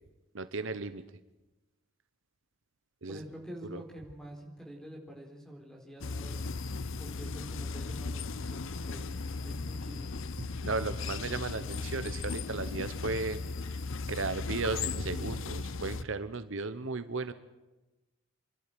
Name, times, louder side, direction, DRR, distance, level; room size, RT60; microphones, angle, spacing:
voice 1, 0.3-1.0 3.0-3.2 3.7-3.8 10.6-13.8 14.1-17.3, right 3 dB, 60° right, 12 dB, 0.9 m, -35 dB
voice 2, 3.1-6.5 7.0-10.2, equal, 5° left, 1 dB, 4.3 m, -47 dB
sound 1, 6.0-16.0, left 4 dB, 65° left, 0.8 m, -36 dB
28.5 x 12.0 x 9.2 m, 1.1 s
head